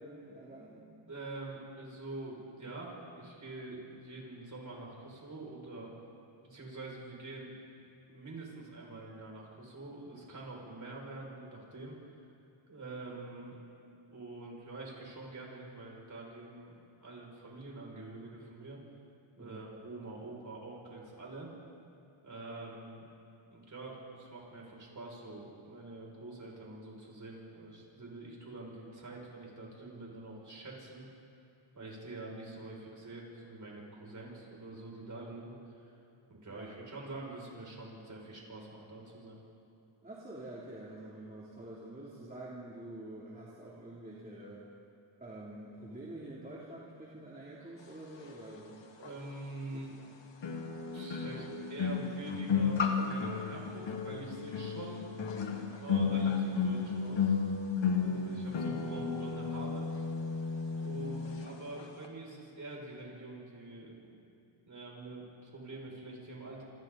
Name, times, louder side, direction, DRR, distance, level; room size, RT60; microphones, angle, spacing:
voice 1, 0.0-0.9 19.4-19.7 36.5-36.8 40.0-44.6 45.2-48.8 49.7-50.1 58.0-58.4 60.9-61.1, right 1 dB, 20° right, -7 dB, 3.2 m, -47 dB
voice 2, 1.1-5.9 6.4-7.5 8.1-12.0 12.7-13.6 14.1-16.8 17.0-18.8 19.4-21.5 22.2-23.1 23.5-31.0 31.7-35.6 36.3-39.4 49.0-49.9 50.9-55.1 55.8-57.4 58.0-59.9 60.8-64.2 64.6-66.6, right 2 dB, 40° right, -3 dB, 6.7 m, -45 dB
sound 1, 49.0-49.1 50.4-61.5 61.8-62.0, left 5 dB, 60° left, 2.1 m, -33 dB
27.0 x 26.5 x 4.2 m, 2.5 s
wide cardioid pair, 130°, 49 cm